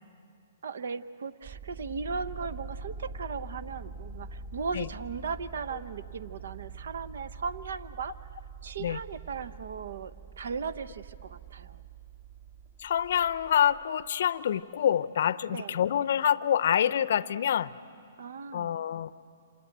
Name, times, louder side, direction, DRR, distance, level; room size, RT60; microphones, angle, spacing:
voice 1, 0.6-8.1 8.6-11.8 15.5-15.8 18.2-18.8, right 5 dB, 70° right, 16 dB, 0.8 m, -37 dB
sound 1, 1.4-14.1, right 3 dB, 50° right, 4.5 m, -44 dB
voice 2, 12.8-17.7 18.5-19.1, left 9 dB, 60° left, 18 dB, 0.6 m, -26 dB
27.5 x 27.0 x 8.0 m, 2.4 s
hypercardioid pair, 125°, 0 cm